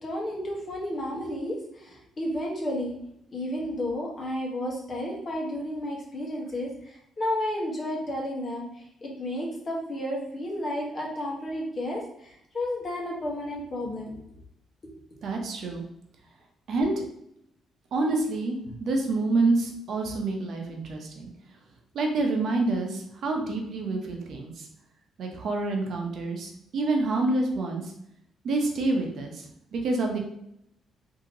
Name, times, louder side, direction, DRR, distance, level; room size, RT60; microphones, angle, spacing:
voice 1, 0.0-2.9 3.3-14.2, left 1 dB, 40° left, -2 dB, 1.2 m, -32 dB
voice 2, 15.2-15.8 16.7-16.9 17.9-21.3 21.9-24.7 25.2-27.9 28.4-29.5 29.7-30.2, right 2 dB, 65° right, 2 dB, 0.8 m, -27 dB
3.8 x 2.8 x 2.8 m, 0.76 s
cardioid pair, 90°, 0 cm